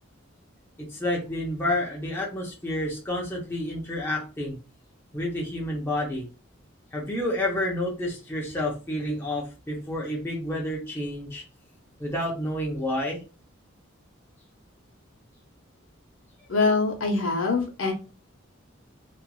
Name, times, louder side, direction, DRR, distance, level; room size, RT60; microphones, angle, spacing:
voice 1, 0.8-4.6 5.1-6.3 6.9-11.4 12.0-13.2, left 1 dB, 10° left, -3 dB, 0.6 m, -29 dB
voice 2, 16.5-17.9, left 3 dB, 75° left, 1 dB, 0.8 m, -24 dB
2.9 x 2.4 x 2.2 m, 0.32 s
head